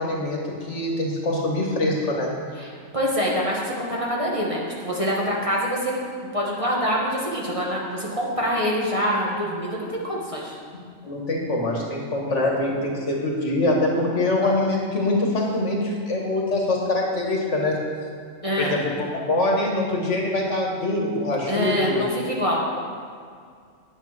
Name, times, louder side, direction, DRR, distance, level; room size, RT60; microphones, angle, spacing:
voice 1, 0.0-2.3 11.0-17.8 18.6-22.1, left 2 dB, 60° left, -1 dB, 1.9 m, -24 dB
voice 2, 2.9-6.0 6.3-10.5 18.4-18.7 21.5-22.6, equal, 25° right, -4 dB, 1.7 m, -25 dB
9.4 x 8.9 x 5.9 m, 2.2 s
omnidirectional pair, 1.4 m